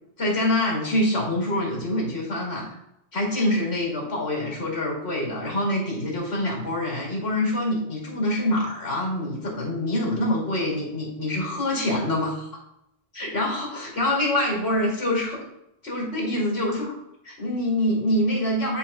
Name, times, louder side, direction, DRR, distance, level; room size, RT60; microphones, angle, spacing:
voice 1, 0.2-2.8 3.1-12.5 13.2-15.4 15.8-16.9 17.2-18.8, left 1 dB, 75° left, -2 dB, 2.8 m, -25 dB
11.0 x 4.5 x 2.3 m, 0.81 s
omnidirectional pair, 1.1 m